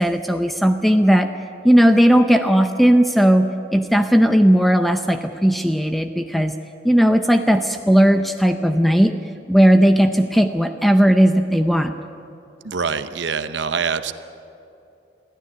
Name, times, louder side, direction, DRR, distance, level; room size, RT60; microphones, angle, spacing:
voice 1, 0.0-1.4 1.6-6.5 6.8-9.2 9.5-11.9, equal, ahead, 7 dB, 0.6 m, -16 dB
voice 2, 12.6-14.1, right 5 dB, 85° right, 11 dB, 0.8 m, -24 dB
22.5 x 15.0 x 9.9 m, 2.7 s
head